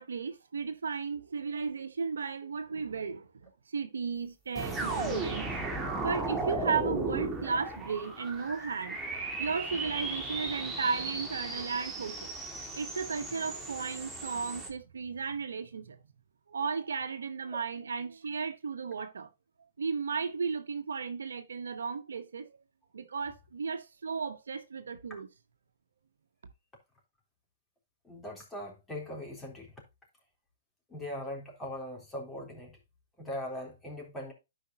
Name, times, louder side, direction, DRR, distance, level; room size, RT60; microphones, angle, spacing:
voice 1, 0.0-5.5 6.0-12.3 12.7-16.0 16.5-19.3 19.8-22.6 22.9-25.3, right 5 dB, 80° right, 0.9 m, -35 dB
sound 1, 4.5-14.7, right 2 dB, 10° right, 1.9 m, -36 dB
voice 2, 28.0-29.7 30.9-32.8 33.2-34.3, left 1 dB, 10° left, 3.6 m, -40 dB
12.0 x 5.1 x 2.8 m
hypercardioid pair, 130°, 0 cm